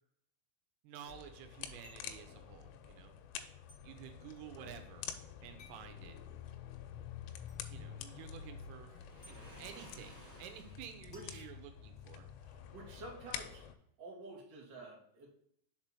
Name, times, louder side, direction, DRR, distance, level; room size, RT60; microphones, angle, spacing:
voice 1, 0.8-3.2 3.8-5.1 5.4-6.2 7.7-12.3, right 9 dB, 85° right, 6 dB, 3.3 m, -52 dB
sound 1, 1.1-13.7, left 9 dB, 85° left, 3.0 m, -48 dB
sound 2, 1.8-2.2 3.7-3.8 5.6-5.9 7.5-7.6 9.2-9.4 11.1-12.2, left 2 dB, 35° left, 1.8 m, -61 dB
Waves surf, 8.9-11.0, equal, 70° right, 0.6 m, -56 dB
voice 2, 11.1-11.5 12.4-13.7 14.0-15.3, right 2 dB, 50° right, -4 dB, 1.3 m, -50 dB
6.7 x 4.4 x 4.2 m, 0.71 s
omnidirectional pair, 6.0 m